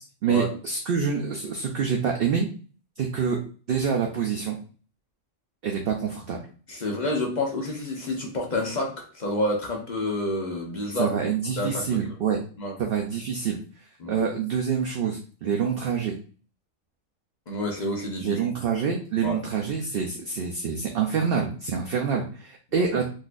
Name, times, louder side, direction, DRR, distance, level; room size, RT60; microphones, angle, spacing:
voice 1, 0.2-2.5 3.0-3.4 3.7-4.6 5.6-6.4 11.0-12.4 12.8-13.6 14.1-16.1 18.2-23.0, right 6 dB, 60° right, 1 dB, 0.6 m, -26 dB
voice 2, 6.7-11.2 11.6-12.0 12.6-12.7 14.0-14.2 17.5-18.4 19.2-19.4 22.8-22.9, left 1 dB, 45° left, 0 dB, 0.7 m, -29 dB
3.8 x 2.6 x 2.4 m, 0.39 s
omnidirectional pair, 1.4 m